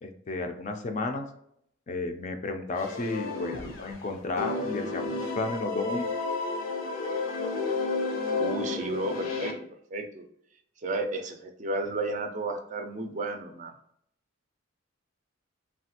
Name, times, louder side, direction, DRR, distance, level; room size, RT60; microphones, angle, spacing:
voice 1, 0.0-1.3 1.9-6.0, left 3 dB, 35° left, 5 dB, 0.4 m, -33 dB
sound 1, 2.8-4.0 4.4-9.5, left 3 dB, 75° left, 0.7 m, -31 dB
voice 2, 8.3-9.5 9.9-10.2 10.8-13.7, right 2 dB, 40° right, 5 dB, 0.4 m, -32 dB
3.2 x 2.3 x 2.8 m, 0.69 s
head